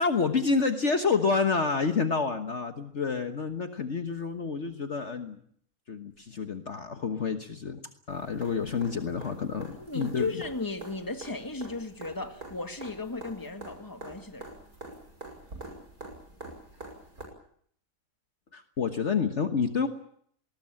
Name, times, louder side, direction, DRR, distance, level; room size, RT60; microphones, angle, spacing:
voice 1, 0.0-5.4 5.9-7.8 8.1-10.3 18.5-19.9, left 5 dB, 50° left, 1.5 m, -28 dB
sound 1, 8.1-17.2 19.2-19.3, right 2 dB, 70° right, 6.5 m, -46 dB
voice 2, 9.8-14.5, left 3 dB, 15° left, 1.9 m, -35 dB
20.0 x 19.5 x 9.0 m
omnidirectional pair, 1.6 m